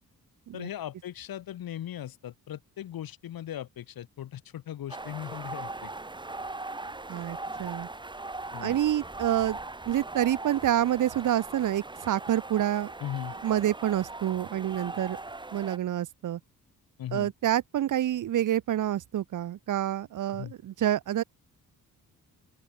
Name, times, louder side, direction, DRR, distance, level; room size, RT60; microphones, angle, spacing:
voice 1, 0.5-5.9 8.5-8.8 13.0-13.3 17.0-17.3 20.3-20.5, left 11 dB, 85° left, 5.8 m, -38 dB
sound 1, 4.9-15.8, right 2 dB, 15° right, 2.1 m, -40 dB
voice 2, 7.1-7.9 8.6-9.6 9.9-12.9 13.4-15.2 15.5-16.4 17.1-21.2, right 12 dB, 60° right, 0.9 m, -28 dB
open air
cardioid pair, 135°, 34 cm